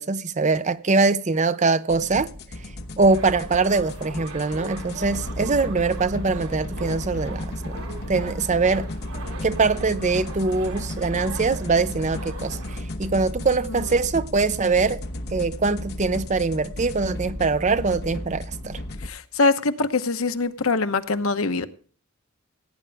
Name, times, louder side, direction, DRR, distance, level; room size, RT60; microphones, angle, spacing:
voice 1, 0.0-2.3 3.0-7.8 8.1-8.9 9.4-15.0 15.3-18.8, right 4 dB, 35° right, 0.5 m, -23 dB
sound 1, 1.9-19.1, left 1 dB, 50° left, 1.1 m, -34 dB
sound 2, 3.0-12.8, right 3 dB, 80° right, 2.5 m, -41 dB
voice 2, 19.1-21.7, left 3 dB, 70° left, 1.0 m, -23 dB
17.5 x 9.8 x 3.4 m
head